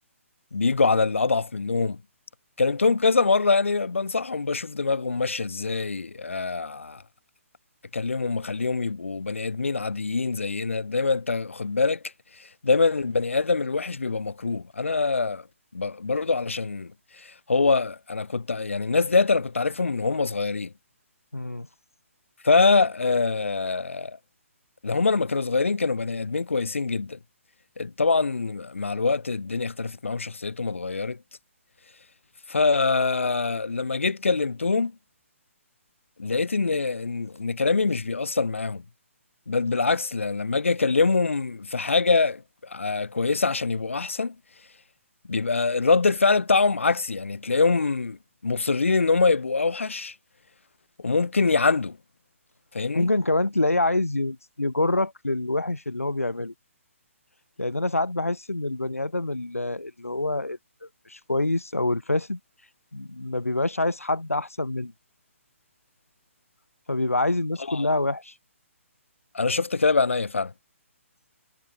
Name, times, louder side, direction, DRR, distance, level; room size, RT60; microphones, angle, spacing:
voice 1, 0.5-2.0 2.6-7.0 7.9-12.0 12.4-15.5 15.7-20.7 22.4-24.2 24.8-27.2 27.8-31.2 32.5-34.9 36.2-38.8 39.5-44.3 45.3-48.2 48.4-50.1 51.0-52.0 52.7-53.1 67.7-67.9 69.3-70.5, left 4 dB, 65° left, 4.2 m, -24 dB
voice 2, 21.3-21.7 52.9-56.5 57.6-62.4 62.9-64.9 66.9-68.3, left 2 dB, 80° left, 1.3 m, -26 dB
figure-of-eight pair, 135°, 8 cm